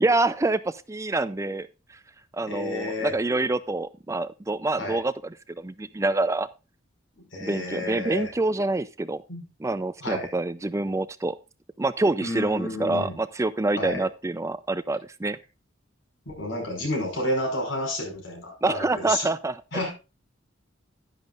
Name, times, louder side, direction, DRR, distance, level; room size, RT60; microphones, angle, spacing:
voice 1, 0.0-1.7 2.3-5.1 5.5-6.5 7.4-9.2 9.6-11.4 11.8-15.4 18.6-19.6, right 2 dB, 15° right, 15 dB, 0.4 m, -26 dB
voice 2, 2.5-3.1 4.8-5.0 7.2-8.3 9.3-9.5 10.0-10.3 12.2-13.2 13.8-14.0 16.3-19.3 19.7-19.9, left 1 dB, 75° left, 2 dB, 5.5 m, -30 dB
11.0 x 10.5 x 2.5 m, 0.29 s
head